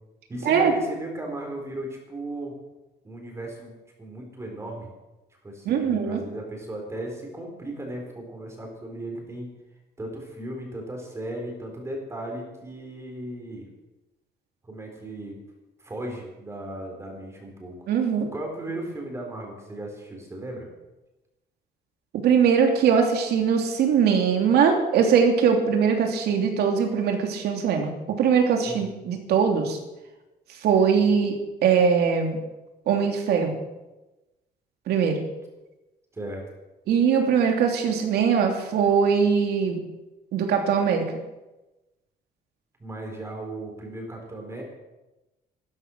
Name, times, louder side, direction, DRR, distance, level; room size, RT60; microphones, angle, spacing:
voice 1, 0.3-2.6 3.0-3.7 4.0-4.9 5.4-9.5 10.0-13.7 14.6-15.4 15.8-17.8 18.3-20.7 28.7-28.8 36.1-36.4 42.8-44.6, right 1 dB, 15° right, 1 dB, 4.1 m, -36 dB
voice 2, 5.6-6.2 17.9-18.3 22.2-29.8 30.6-31.4 31.6-32.4 32.9-33.6 34.9-35.2 36.9-39.8 40.3-41.0, right 6 dB, 75° right, 4 dB, 3.0 m, -21 dB
15.5 x 13.0 x 6.3 m, 1.0 s
cardioid pair, 155°, 17 cm